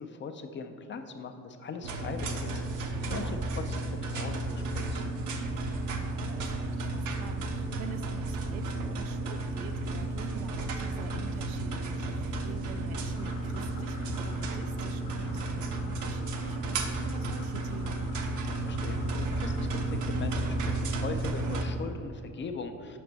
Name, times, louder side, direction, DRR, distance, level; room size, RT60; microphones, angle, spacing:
voice 1, 0.0-3.3 3.7-5.1 18.6-23.0, left 5 dB, 25° left, 7 dB, 0.4 m, -40 dB
sound 1, 1.8-21.6, right 2 dB, 45° right, 0.8 m, -33 dB
voice 2, 3.1-3.4 5.5-18.1, right 7 dB, 75° right, 8 dB, 0.5 m, -46 dB
sound 2, 13.1-20.0, left 5 dB, 45° left, 0.9 m, -51 dB
5.8 x 5.2 x 3.4 m, 2.7 s
hypercardioid pair, 55°, 43 cm